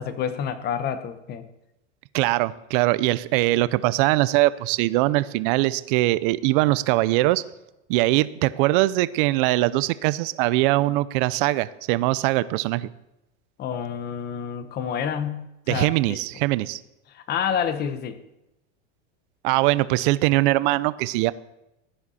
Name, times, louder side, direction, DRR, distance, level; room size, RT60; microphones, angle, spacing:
voice 1, 0.0-1.5 13.6-16.2 17.1-18.2, left 8 dB, 25° left, 11 dB, 0.9 m, -29 dB
voice 2, 2.1-7.4 7.9-12.9 15.7-16.8 19.4-21.3, right 18 dB, 50° right, 17 dB, 0.5 m, -22 dB
15.5 x 10.0 x 4.2 m, 0.91 s
supercardioid pair, 155°, 36 cm